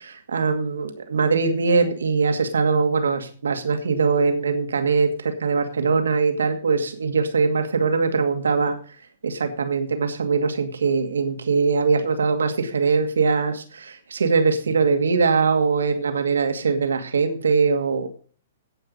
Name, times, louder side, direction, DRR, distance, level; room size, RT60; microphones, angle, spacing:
voice 1, 0.0-8.8 9.2-18.1, right 4 dB, 80° right, 7 dB, 2.2 m, -22 dB
17.0 x 5.7 x 5.3 m, 0.43 s
hypercardioid pair, 125°, 0 cm